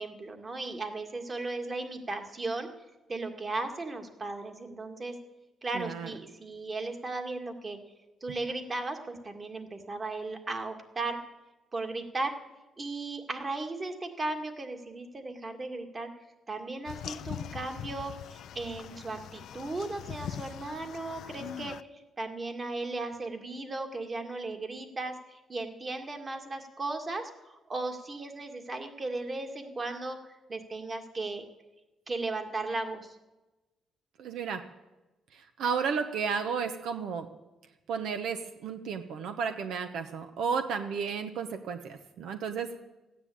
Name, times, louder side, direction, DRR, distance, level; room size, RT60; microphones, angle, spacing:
voice 1, 0.0-2.7 3.1-5.2 5.6-7.8 8.2-11.2 11.7-12.3 12.8-16.1 16.5-21.8 22.2-31.4 32.1-33.2, right 2 dB, 30° right, 5 dB, 1.9 m, -36 dB
voice 2, 5.7-6.1 34.2-34.6 35.3-37.3 37.9-42.8, right 6 dB, 80° right, 7 dB, 0.9 m, -33 dB
sound 1, 16.9-21.8, left 10 dB, 75° left, 0.4 m, -42 dB
14.5 x 9.7 x 8.5 m, 1.1 s
cardioid pair, 90°, 0 cm